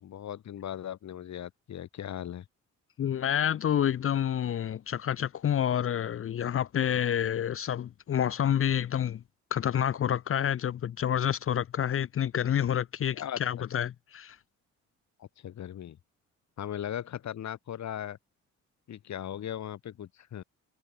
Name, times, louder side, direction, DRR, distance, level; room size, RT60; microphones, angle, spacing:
voice 1, 0.0-2.4 13.1-13.4 15.2-16.0 16.6-18.2 18.9-20.4, left 10 dB, 65° left, 4.5 m, -38 dB
voice 2, 3.0-9.2 9.5-14.4, left 9 dB, 45° left, 0.7 m, -28 dB
cardioid pair, 90°, 30 cm